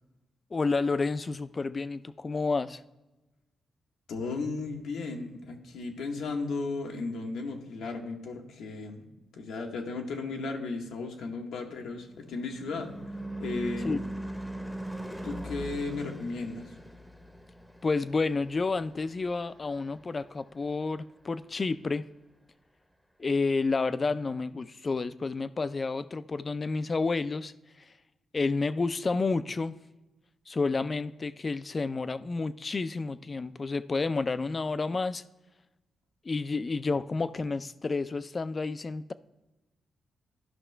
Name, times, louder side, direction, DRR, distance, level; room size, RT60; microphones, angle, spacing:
voice 1, 0.5-2.8 13.8-14.0 17.8-22.0 23.2-27.5 28.3-29.8 30.5-35.2 36.2-39.1, left 3 dB, 35° left, 14 dB, 0.4 m, -30 dB
voice 2, 4.1-9.0 9.3-13.0 13.4-14.0 15.2-16.7, left 3 dB, 90° left, 2 dB, 1.1 m, -35 dB
Car passing by / Truck / Engine, 11.6-20.3, right 1 dB, ahead, 0.8 m, -40 dB
12.5 x 5.5 x 3.3 m, 1.0 s
cardioid pair, 80°, 0 cm